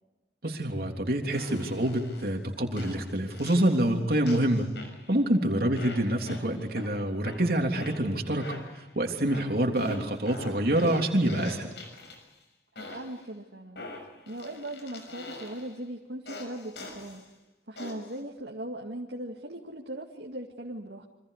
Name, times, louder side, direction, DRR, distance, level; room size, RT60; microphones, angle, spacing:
voice 1, 0.4-4.7 5.1-8.5 8.9-11.7, right 1 dB, 55° right, 2 dB, 3.4 m, -26 dB
sound 1, 1.3-2.3 2.8-3.9 4.3-5.2 5.8-6.9 7.3-8.9 9.3-12.4 12.8-13.2 13.8-15.8 16.3-17.2 17.8-18.2, left 2 dB, 75° left, 6.5 m, -43 dB
voice 2, 12.7-13.8 14.3-17.3 17.7-21.1, right 1 dB, 80° right, 0 dB, 2.2 m, -39 dB
28.5 x 25.5 x 5.0 m, 1.0 s
head